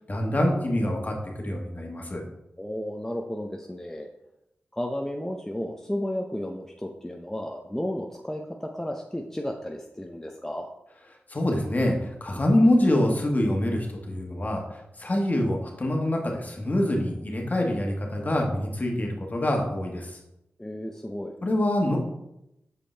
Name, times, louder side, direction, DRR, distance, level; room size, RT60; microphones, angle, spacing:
voice 1, 0.1-2.2 11.3-20.2 21.4-22.0, left 1 dB, 40° left, 1 dB, 1.5 m, -25 dB
voice 2, 2.6-4.1 4.7-10.7 20.6-21.4, left 1 dB, 10° left, 2 dB, 0.6 m, -33 dB
6.6 x 5.1 x 3.3 m, 0.86 s
cardioid pair, 45°, 4 cm